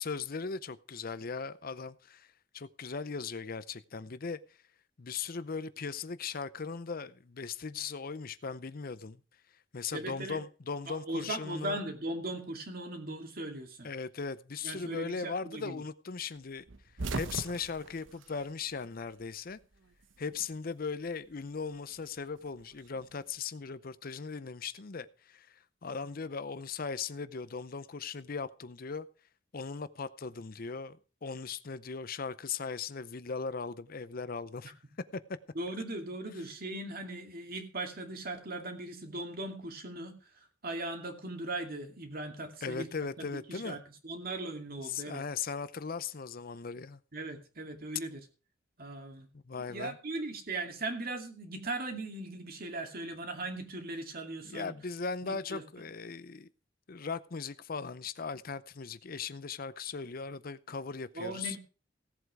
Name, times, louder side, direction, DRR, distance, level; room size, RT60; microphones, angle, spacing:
voice 1, 0.0-2.3 2.5-4.4 5.0-9.2 9.7-11.8 13.8-16.6 17.1-19.6 20.2-29.1 29.5-34.7 35.1-35.2 42.6-43.8 44.8-47.0 49.3-50.0 54.4-56.5 56.9-61.6, left 5 dB, 50° left, 0.6 m, -38 dB
voice 2, 9.9-10.4 10.9-13.9 14.6-15.8 35.5-40.1 40.6-42.9 43.2-45.2 47.1-48.2 48.8-49.3 49.7-54.7 55.2-55.6 61.2-61.6, right 2 dB, 50° right, 2.4 m, -39 dB
sound 1, 16.7-19.2 19.5-20.6 21.8-23.2, right 3 dB, 85° right, 1.0 m, -40 dB
16.5 x 8.0 x 4.8 m
head